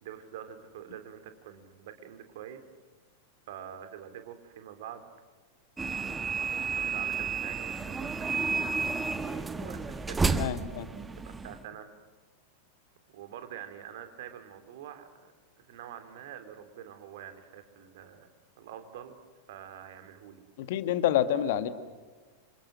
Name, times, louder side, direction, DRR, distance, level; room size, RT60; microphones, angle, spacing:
voice 1, 0.0-2.6 3.5-5.1 5.9-10.4 11.2-11.9 13.1-15.3 15.7-18.3 18.6-19.2 19.5-20.4, right 9 dB, 55° right, 8 dB, 3.2 m, -46 dB
sound 1, 5.8-11.6, right 4 dB, 10° right, 1.2 m, -31 dB
voice 2, 10.4-10.9 20.6-21.7, left 11 dB, 55° left, 10 dB, 1.8 m, -27 dB
29.5 x 27.5 x 6.4 m, 1.4 s
figure-of-eight pair, 90°, 0 cm